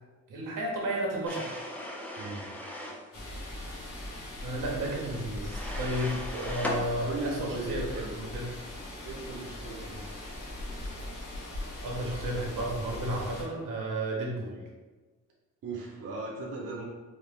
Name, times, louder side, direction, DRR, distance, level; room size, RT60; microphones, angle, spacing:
voice 1, 0.3-1.6 4.4-8.4 11.8-14.6, right 1 dB, 80° right, -2 dB, 1.0 m, -33 dB
sound 1, 1.3-3.0 5.5-6.8, left 1 dB, 5° left, 0.3 m, -37 dB
voice 2, 2.2-2.5 4.1-4.3 4.8-4.9 7.0-8.2 9.0-10.1 15.6-16.9, right 3 dB, 50° right, -3 dB, 0.6 m, -37 dB
sound 2, 3.1-13.4, left 1 dB, 70° left, 1.3 m, -40 dB
4.2 x 2.0 x 3.4 m, 1.3 s
wide cardioid pair, 165°, 32 cm